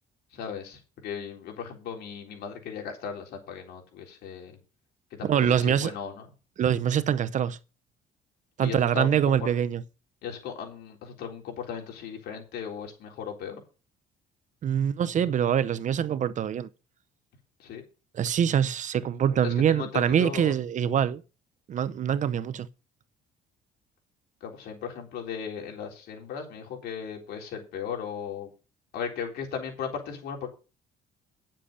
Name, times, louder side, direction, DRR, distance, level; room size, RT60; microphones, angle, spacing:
voice 1, 0.3-4.6 5.1-6.2 8.6-9.5 10.2-13.6 17.6-17.8 19.4-20.5 24.4-28.5 28.9-30.5, left 7 dB, 75° left, 3.9 m, -37 dB
voice 2, 5.2-5.9 6.6-7.6 8.6-9.8 14.6-16.7 18.1-21.2 21.7-22.7, right 9 dB, 45° right, 0.7 m, -24 dB
10.0 x 7.5 x 5.1 m
cardioid pair, 110°, 17 cm